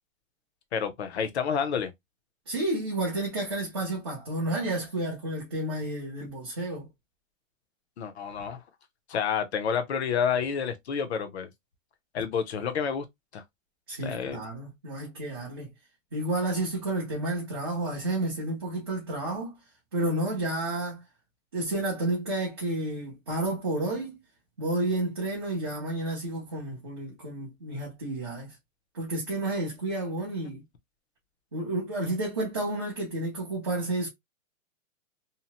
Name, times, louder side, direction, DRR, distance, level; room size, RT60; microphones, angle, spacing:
voice 1, 0.7-1.9 8.0-8.6 9.1-11.5 12.1-13.1 13.3-13.4 14.0-14.4, left 7 dB, 55° left, 0.7 m, -29 dB
voice 2, 2.5-6.9 13.9-15.7 16.1-19.5 19.9-21.0 21.5-24.2 24.6-28.5 28.9-30.6 31.5-34.1, right 2 dB, 20° right, 0.4 m, -31 dB
2.8 x 2.1 x 2.8 m
hypercardioid pair, 175°, 40 cm